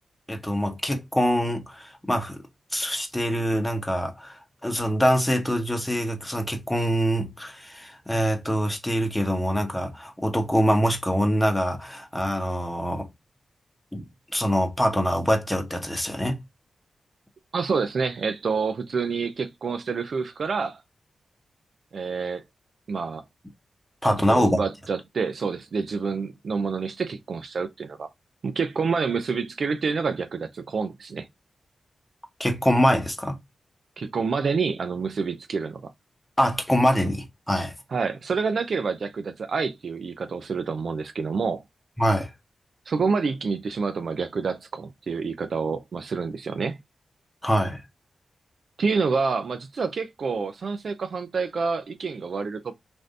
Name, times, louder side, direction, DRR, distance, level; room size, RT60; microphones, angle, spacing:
voice 1, 0.3-2.4 2.7-13.1 13.9-14.0 14.3-16.4 24.0-24.6 32.4-33.4 36.4-37.7 42.0-42.3 47.4-47.8, equal, 10° left, 1.0 m, -24 dB
voice 2, 17.5-20.8 21.9-22.4 22.9-23.2 24.0-28.1 28.4-31.3 34.0-35.9 37.9-41.6 42.9-46.8 48.8-52.7, right 5 dB, 70° right, 0.4 m, -28 dB
3.2 x 2.6 x 2.5 m
cardioid pair, 55°, 0 cm